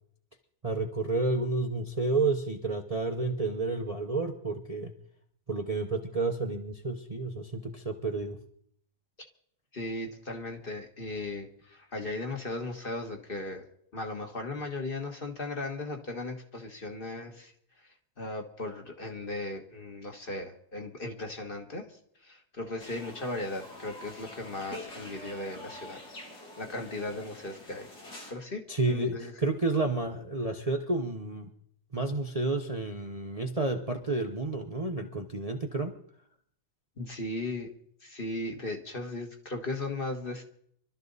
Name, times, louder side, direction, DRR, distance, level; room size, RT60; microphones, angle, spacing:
voice 1, 0.6-4.9 5.5-8.4 28.7-31.5 31.9-35.9, right 3 dB, 30° right, 3 dB, 0.9 m, -30 dB
voice 2, 9.7-13.6 13.9-17.5 18.2-21.8 22.2-26.0 26.6-27.9 28.3-29.3 37.0-37.7 38.0-40.4, left 2 dB, 35° left, 3 dB, 1.7 m, -37 dB
sound 1, 22.8-28.3, left 1 dB, 85° left, 3.2 m, -46 dB
24.5 x 12.5 x 4.1 m, 0.67 s
omnidirectional pair, 1.7 m